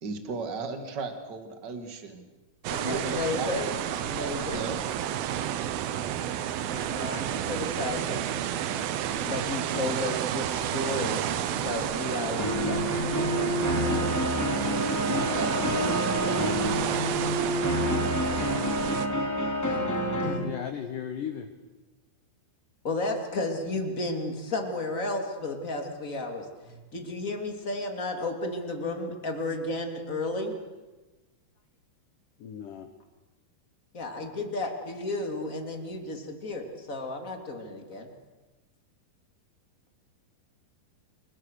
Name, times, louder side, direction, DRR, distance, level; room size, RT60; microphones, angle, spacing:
voice 1, 0.0-2.3 2.7-3.5 4.5-5.0 15.1-16.4, right 3 dB, 40° right, 6 dB, 1.6 m, -36 dB
sound 1, 2.6-19.1, right 10 dB, 70° right, 2.5 m, -31 dB
voice 2, 2.7-3.7 4.0-4.7 6.7-8.3 9.1-11.2 11.6-12.8 19.6-20.5 22.8-30.5 33.9-38.1, left 2 dB, 20° left, 4 dB, 2.4 m, -33 dB
sound 2, 12.4-20.4, equal, 5° left, 3.0 m, -28 dB
voice 3, 20.2-21.5 32.4-32.9, left 9 dB, 70° left, 8 dB, 2.0 m, -36 dB
29.0 x 23.5 x 6.6 m, 1.2 s
omnidirectional pair, 5.4 m